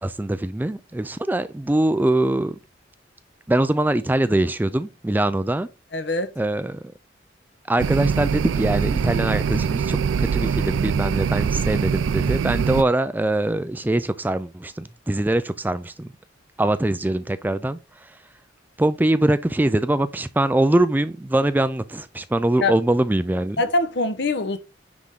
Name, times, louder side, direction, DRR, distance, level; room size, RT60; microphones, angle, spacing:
voice 1, 0.0-2.6 3.5-5.7 6.4-6.8 7.7-16.1 16.6-18.1 18.8-23.6, right 1 dB, 10° right, 0.3 m, -23 dB
voice 2, 5.9-6.3 22.6-22.7 23.6-24.6, left 2 dB, 65° left, 1.0 m, -23 dB
sound 1, 7.8-12.8, right 6 dB, 90° right, 0.3 m, -23 dB
9.7 x 3.6 x 3.7 m
head